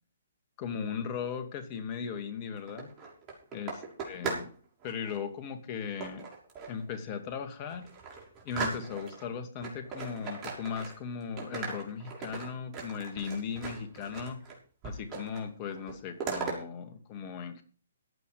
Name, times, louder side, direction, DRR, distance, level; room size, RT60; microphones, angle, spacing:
voice 1, 0.6-2.9 3.5-3.8 4.1-4.5 4.8-6.2 6.7-7.9 8.4-14.4 14.8-17.6, left 6 dB, 35° left, 7 dB, 2.4 m, -37 dB
sound 1, 2.6-4.5 4.8-5.2 6.0-6.8 7.3-7.4 7.7-9.2 9.6-11.1 11.4-14.5 14.8-15.4 15.7-16.6, right 5 dB, 25° right, 6.5 m, -38 dB
15.5 x 9.9 x 5.2 m, 0.42 s
figure-of-eight pair, 130°, 0 cm